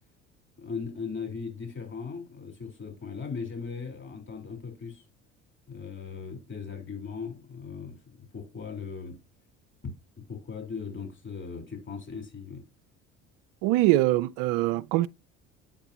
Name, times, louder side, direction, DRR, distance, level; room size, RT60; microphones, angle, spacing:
voice 1, 0.6-5.0 5.7-9.2 10.3-12.6, left 5 dB, 35° left, 4.1 m, -38 dB
voice 2, 13.6-15.1, right 17 dB, 65° right, 0.5 m, -23 dB
8.7 x 5.8 x 2.9 m
hypercardioid pair, 65°, 35 cm